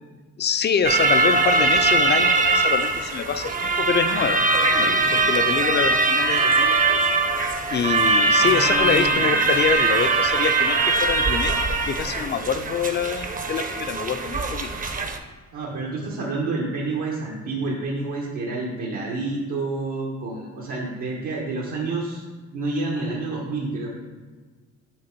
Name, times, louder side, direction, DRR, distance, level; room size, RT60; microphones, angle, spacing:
voice 1, 0.4-7.0 7.7-14.8, left 7 dB, 35° left, 11 dB, 0.4 m, -26 dB
sound 1, 0.8-15.2, right 3 dB, 30° right, 0.6 m, -21 dB
voice 2, 4.7-5.3 8.4-9.3 15.5-22.2 22.5-23.9, right 3 dB, 80° right, -5 dB, 1.1 m, -29 dB
7.9 x 3.3 x 4.5 m, 1.4 s
cardioid pair, 90°, 30 cm